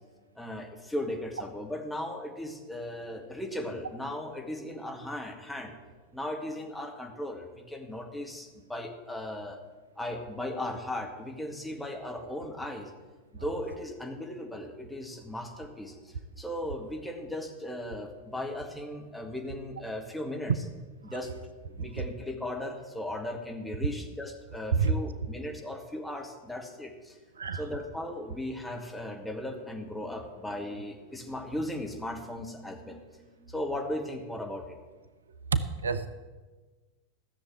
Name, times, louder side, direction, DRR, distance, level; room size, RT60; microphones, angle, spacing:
voice 1, 0.4-5.7 6.1-9.6 10.0-12.9 13.3-20.5 21.0-21.3 21.7-27.2 27.5-34.8, left 1 dB, 5° left, 1 dB, 2.1 m, -37 dB
voice 2, 35.5-36.1, right 5 dB, 70° right, 12 dB, 0.7 m, -27 dB
14.5 x 7.1 x 9.0 m, 1.3 s
figure-of-eight pair, 90°, 0 cm